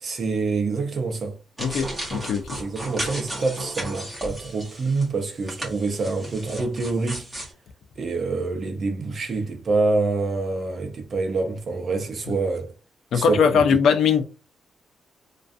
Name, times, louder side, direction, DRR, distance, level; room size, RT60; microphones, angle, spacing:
voice 1, 0.0-1.4 2.5-7.3 8.0-12.7 13.1-13.8, right 3 dB, 40° right, 0.5 m, -26 dB
voice 2, 1.6-2.6 13.1-14.2, left 6 dB, 75° left, 0.4 m, -20 dB
sound 1, 1.6-5.1 5.4-7.5, right 1 dB, 5° right, 0.9 m, -34 dB
2.5 x 2.2 x 2.4 m
wide cardioid pair, 160°, 0 cm